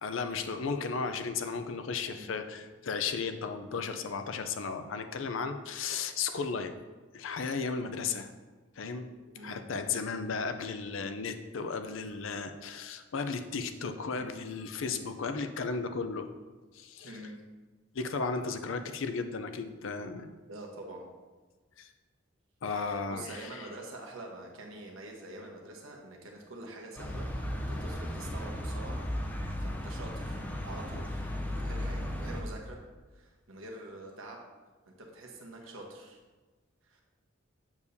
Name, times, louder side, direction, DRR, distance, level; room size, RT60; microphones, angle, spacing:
voice 1, 0.0-6.7 7.1-8.3 8.8-16.3 16.7-17.2 17.9-20.3 21.8-21.9 22.6-23.7, left 5 dB, 80° left, 8 dB, 0.5 m, -35 dB
voice 2, 2.1-2.4 9.3-9.8 17.0-17.4 20.5-21.1 22.6-32.8 33.1-34.4 34.9-36.2 36.8-37.0, right 2 dB, 90° right, 0 dB, 1.2 m, -46 dB
sound 1, 27.0-32.4, left 1 dB, 10° left, 0.6 m, -35 dB
7.1 x 6.8 x 2.7 m, 1.3 s
head